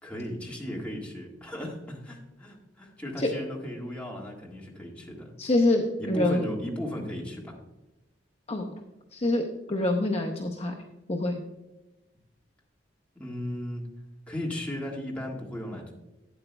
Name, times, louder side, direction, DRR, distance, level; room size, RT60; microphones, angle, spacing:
voice 1, 0.0-5.3 6.0-7.6 13.1-13.9 14.3-15.9, left 1 dB, 5° left, -2 dB, 1.7 m, -36 dB
voice 2, 5.4-6.4 8.5-8.7 9.1-9.4 9.7-10.7 11.1-11.4, left 2 dB, 35° left, 1 dB, 0.7 m, -25 dB
12.0 x 9.0 x 2.2 m, 1.0 s
head